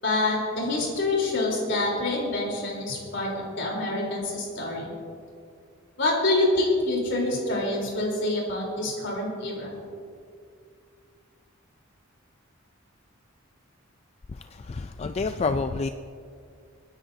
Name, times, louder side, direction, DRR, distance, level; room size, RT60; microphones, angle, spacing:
voice 1, 0.0-4.9 6.0-9.7, left 2 dB, 65° left, -2 dB, 3.6 m, -26 dB
voice 2, 14.6-15.9, left 4 dB, 30° left, 8 dB, 0.3 m, -28 dB
29.5 x 9.8 x 2.7 m, 2.3 s
head